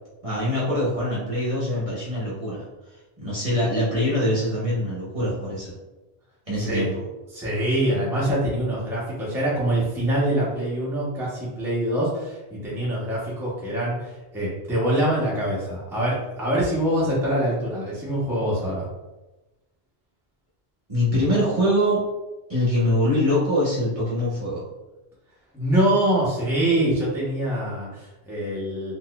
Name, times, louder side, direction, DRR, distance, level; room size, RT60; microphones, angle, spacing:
voice 1, 0.2-2.7 3.2-5.7 6.5-7.0 20.9-22.1 22.5-24.6, left 1 dB, 35° right, -8 dB, 0.9 m, -23 dB
voice 2, 7.3-18.9 25.5-28.9, right 1 dB, 5° right, -7 dB, 0.8 m, -24 dB
4.0 x 2.5 x 2.3 m, 1.1 s
omnidirectional pair, 1.1 m